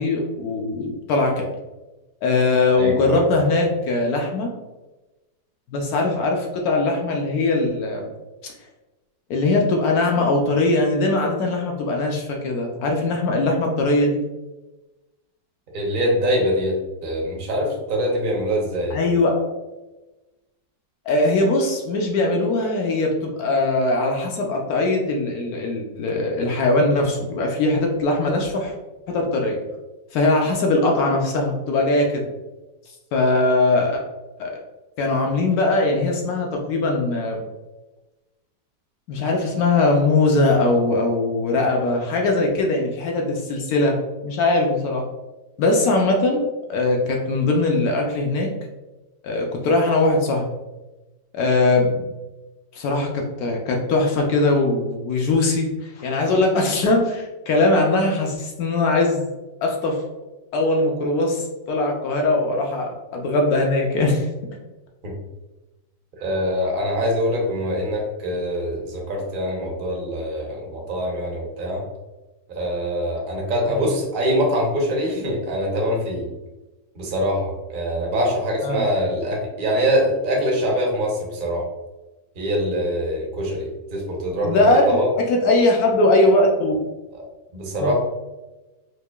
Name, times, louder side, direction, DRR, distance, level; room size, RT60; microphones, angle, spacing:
voice 1, 0.0-1.5 2.2-4.5 5.7-8.1 9.3-14.2 18.9-19.5 21.1-28.7 29.1-29.6 30.1-32.2 33.1-34.0 34.4-34.5 35.0-37.4 39.1-44.0 44.2-45.0 45.6-46.4 46.7-48.5 49.2-50.5 51.3-52.1 52.7-59.3 59.6-60.0 60.5-64.3 73.7-73.9 78.6-78.8 84.4-86.8 87.8-87.9, left 2 dB, 70° left, 1 dB, 0.9 m, -20 dB
voice 2, 2.7-3.5 15.7-19.0 65.0-65.1 66.2-71.8 72.5-76.3 77.0-81.6 82.4-84.6 84.9-85.1 87.1-87.2 87.5-87.9, equal, 70° right, -1 dB, 0.5 m, -24 dB
4.7 x 2.5 x 2.2 m, 1.1 s
omnidirectional pair, 2.0 m